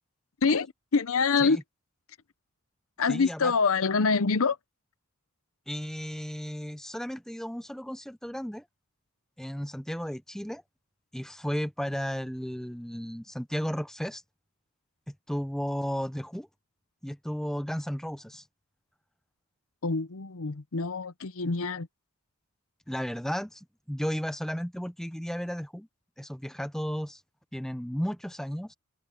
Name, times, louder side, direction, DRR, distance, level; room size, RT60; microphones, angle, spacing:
voice 1, 0.4-1.6 3.0-4.6 19.8-21.9, left 4 dB, 65° left, 0.7 m, -26 dB
voice 2, 3.1-3.5 5.7-8.6 9.4-10.6 11.1-14.2 15.1-16.5 17.0-18.4 22.9-25.9 26.2-27.2 27.5-28.7, equal, ahead, 0.7 m, -34 dB
head